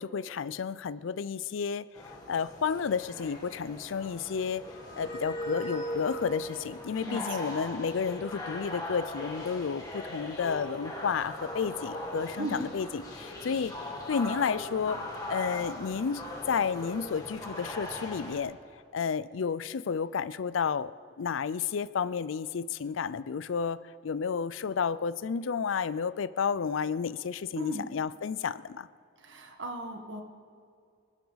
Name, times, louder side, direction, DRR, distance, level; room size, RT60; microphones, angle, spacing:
voice 1, 0.0-1.8 2.3-4.7 5.0-13.7 14.1-15.0 15.3-18.6 18.9-20.9 21.2-28.9, left 6 dB, 80° left, 17 dB, 0.4 m, -31 dB
sound 1, 1.9-18.4, left 1 dB, 20° left, 2.1 m, -39 dB
voice 2, 7.0-7.8 12.4-12.6 27.6-27.9 29.2-30.2, right 1 dB, 70° right, 3 dB, 1.6 m, -38 dB
24.5 x 11.5 x 4.0 m, 2.3 s
head